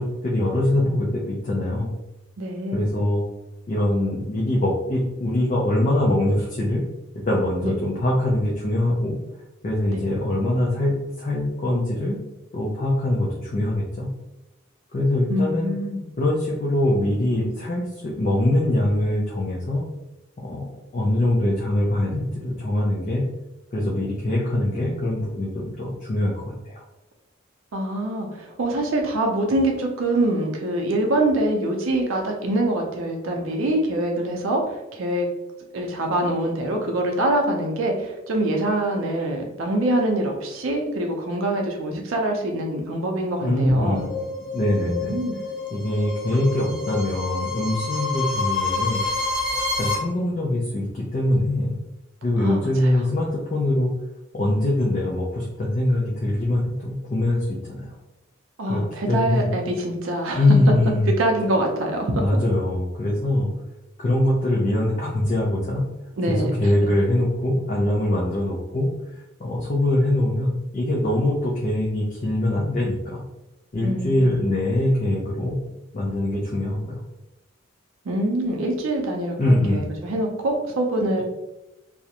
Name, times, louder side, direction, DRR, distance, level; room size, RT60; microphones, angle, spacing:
voice 1, 0.0-1.9 2.7-3.2 3.7-6.8 7.1-9.2 9.6-12.2 12.5-14.1 14.9-15.7 16.2-19.8 20.4-23.2 23.7-26.8 43.4-44.2 44.5-45.2 45.7-49.0 49.5-51.7 52.2-53.9 54.3-57.9 58.7-59.5 60.4-61.1 62.1-63.5 64.0-65.8 66.3-68.9 69.4-73.2 73.7-75.6 75.9-77.0 79.4-79.8 81.2-81.3, left 1 dB, 40° left, -4 dB, 0.4 m, -23 dB
voice 2, 2.4-2.8 7.6-7.7 9.9-10.0 15.3-16.0 27.7-35.3 35.7-44.0 44.8-45.4 46.6-46.7 52.4-52.9 58.6-60.4 61.1-62.1 66.2-66.7 73.8-74.3 78.0-81.2, right 1 dB, 80° right, 1 dB, 0.5 m, -24 dB
sound 1, 43.9-49.9, left 3 dB, ahead, 0.8 m, -28 dB
2.4 x 2.0 x 2.8 m, 0.95 s
head